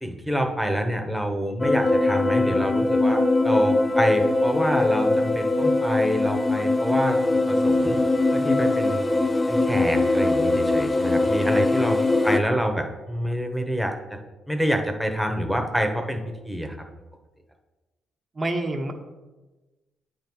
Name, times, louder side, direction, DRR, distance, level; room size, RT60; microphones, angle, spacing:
voice 1, 0.0-8.0 8.3-9.0 9.5-16.9, equal, 5° right, 4 dB, 1.1 m, -27 dB
sound 1, 1.6-12.4, left 2 dB, 20° left, 0.4 m, -21 dB
voice 2, 18.3-18.9, right 2 dB, 30° right, 4 dB, 1.0 m, -27 dB
8.7 x 3.7 x 6.1 m, 1.2 s
cardioid pair, 90°, 0 cm